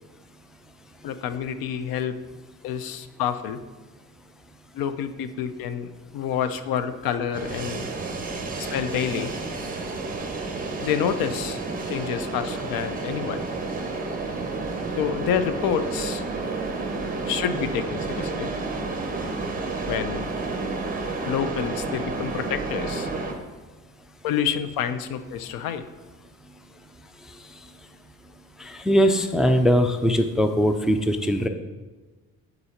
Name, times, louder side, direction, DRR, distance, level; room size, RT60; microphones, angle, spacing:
voice 1, 1.0-2.2 2.6-3.6 4.7-7.9 8.6-9.3 10.8-11.6 11.9-13.5 15.0-16.2 17.2-18.5 19.9-20.3 21.2-23.1 24.2-25.8, left 8 dB, 75° left, 11 dB, 0.6 m, -28 dB
sound 1, 7.3-23.3, right 3 dB, 25° right, 1.1 m, -30 dB
voice 2, 28.6-31.5, equal, ahead, 7 dB, 0.3 m, -21 dB
7.1 x 4.0 x 5.0 m, 1.2 s
cardioid pair, 110°, 35 cm